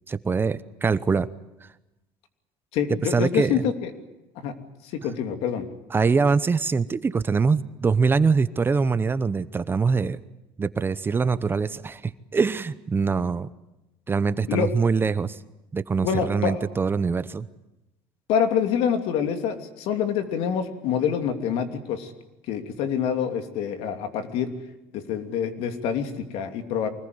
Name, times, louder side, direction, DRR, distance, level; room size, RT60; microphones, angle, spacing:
voice 1, 0.1-1.3 3.1-3.6 5.9-10.2 10.6-13.5 14.1-15.4 15.7-17.5, right 5 dB, 20° right, 14 dB, 0.8 m, -23 dB
voice 2, 2.7-3.9 4.4-4.5 4.9-5.7 14.5-14.7 16.0-16.6 18.3-22.1 22.5-24.5 24.9-26.9, left 8 dB, 70° left, 7 dB, 3.0 m, -26 dB
24.5 x 20.5 x 9.6 m, 0.96 s
cardioid pair, 125°, 11 cm